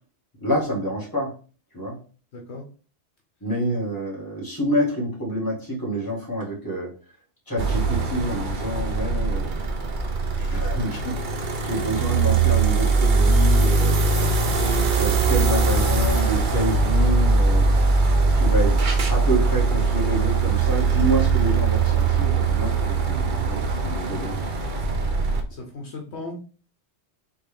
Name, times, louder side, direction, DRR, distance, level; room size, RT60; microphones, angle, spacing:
voice 1, 0.4-1.3 1.7-2.0 3.4-6.9 7.5-9.6 10.4-14.3 15.0-17.7 18.3-18.8 19.1-24.4, right 1 dB, 20° left, -3 dB, 1.7 m, -27 dB
voice 2, 2.3-2.6 25.5-26.4, left 2 dB, 70° left, 1 dB, 1.2 m, -36 dB
sound 1, 7.6-25.4, right 4 dB, 50° right, 0.7 m, -21 dB
4.2 x 3.4 x 3.5 m, 0.37 s
omnidirectional pair, 1.2 m